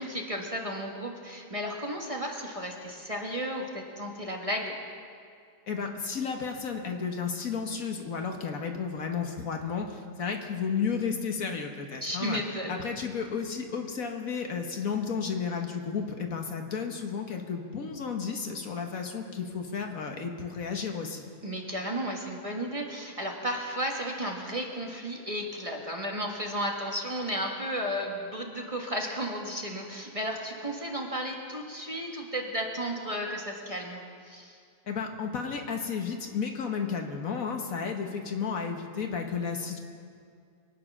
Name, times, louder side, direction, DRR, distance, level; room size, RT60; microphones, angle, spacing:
voice 1, 0.0-4.7 12.0-12.8 21.4-34.6, equal, 25° right, 0 dB, 1.4 m, -33 dB
voice 2, 5.7-12.4 12.7-21.3 34.9-39.8, left 6 dB, 65° left, 3 dB, 1.7 m, -33 dB
23.5 x 9.5 x 6.1 m, 2.3 s
omnidirectional pair, 1.6 m